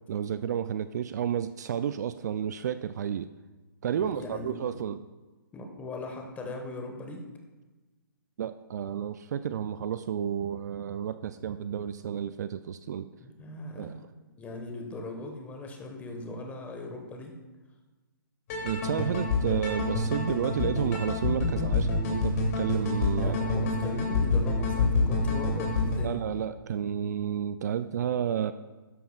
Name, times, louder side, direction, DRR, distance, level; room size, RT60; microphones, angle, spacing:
voice 1, 0.1-3.3 3.8-5.0 8.4-13.1 13.8-14.0 18.6-23.4 26.0-28.5, right 9 dB, 50° right, 12 dB, 0.4 m, -31 dB
voice 2, 3.9-4.8 5.5-7.2 13.2-13.9 14.4-17.3 23.2-26.2, left 2 dB, 15° left, 3 dB, 1.4 m, -39 dB
sound 1, 18.5-26.0, left 3 dB, 45° left, 2.8 m, -27 dB
12.5 x 10.5 x 2.4 m, 1.2 s
figure-of-eight pair, 135°, 12 cm